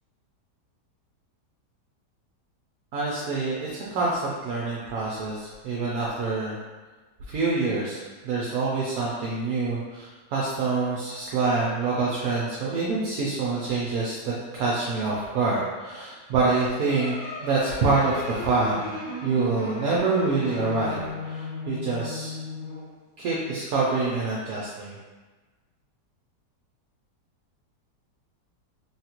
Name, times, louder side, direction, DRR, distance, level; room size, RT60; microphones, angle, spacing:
voice 1, 2.9-6.6 7.3-21.0 21.2-22.4 23.2-24.9, right 3 dB, 70° right, -5 dB, 0.9 m, -26 dB
sound 1, 16.9-22.9, left 2 dB, 70° left, 1.7 m, -36 dB
3.5 x 2.3 x 2.8 m, 1.3 s
omnidirectional pair, 1.8 m